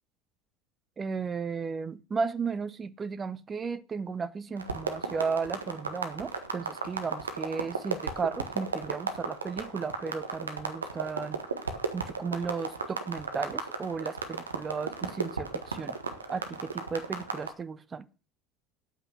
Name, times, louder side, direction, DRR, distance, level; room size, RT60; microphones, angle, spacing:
voice 1, 1.0-11.4 11.9-16.0 16.3-18.0, right 5 dB, 30° right, 0.8 m, -34 dB
sound 1, 4.6-17.5, right 4 dB, 90° right, 1.4 m, -34 dB
9.0 x 7.9 x 6.3 m
hypercardioid pair, 70°, 0 cm